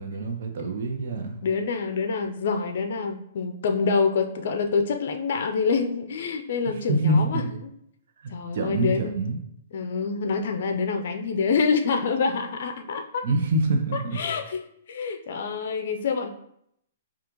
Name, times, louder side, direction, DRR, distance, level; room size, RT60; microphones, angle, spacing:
voice 1, 0.0-1.4 6.9-7.4 8.2-9.4 13.2-14.3, right 2 dB, 65° right, 3 dB, 0.7 m, -25 dB
voice 2, 1.4-7.4 8.3-9.1 9.7-13.2 14.1-14.6 14.9-16.3, left 5 dB, 65° left, 6 dB, 0.4 m, -26 dB
4.9 x 2.4 x 3.0 m, 0.72 s
hypercardioid pair, 140°, 0 cm